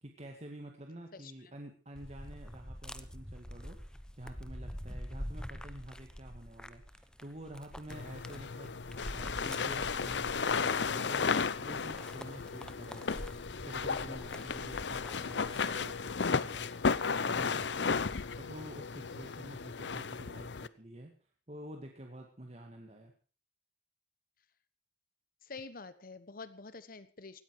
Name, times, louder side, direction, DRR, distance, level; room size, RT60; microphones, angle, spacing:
voice 1, 0.0-21.1 21.5-23.1, right 1 dB, 40° right, 3 dB, 2.0 m, -49 dB
voice 2, 1.1-1.5 25.4-27.4, left 4 dB, 55° left, 14 dB, 1.2 m, -48 dB
sound 1, 2.0-16.0, equal, 5° left, 1.0 m, -46 dB
sound 2, 7.9-20.7, left 5 dB, 80° left, 0.7 m, -34 dB
18.0 x 14.0 x 4.8 m, 0.36 s
head